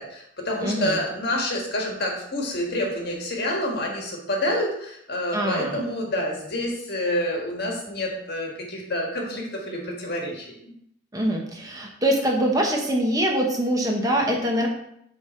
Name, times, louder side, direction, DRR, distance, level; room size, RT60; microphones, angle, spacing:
voice 1, 0.0-10.5, left 1 dB, 55° left, 0 dB, 1.6 m, -28 dB
voice 2, 0.6-1.0 5.3-5.8 11.1-14.7, right 1 dB, 20° right, 0 dB, 0.9 m, -24 dB
7.9 x 3.4 x 4.3 m, 0.74 s
head